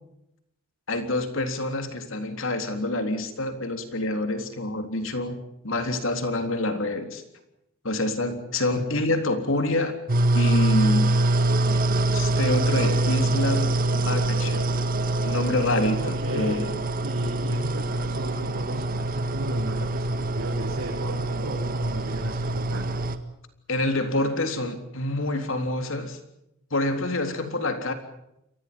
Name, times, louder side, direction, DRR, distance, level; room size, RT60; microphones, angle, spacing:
voice 1, 0.9-7.2 7.8-10.0 10.3-11.2 12.1-14.7 15.2-16.7 23.7-26.2 26.7-27.9, left 1 dB, 65° left, 7 dB, 3.7 m, -27 dB
sound 1, 10.1-23.2, right 2 dB, 45° right, 1.8 m, -25 dB
voice 2, 16.0-16.7 17.0-22.9, equal, 90° right, -3 dB, 6.9 m, -33 dB
30.0 x 23.5 x 5.5 m, 0.82 s
head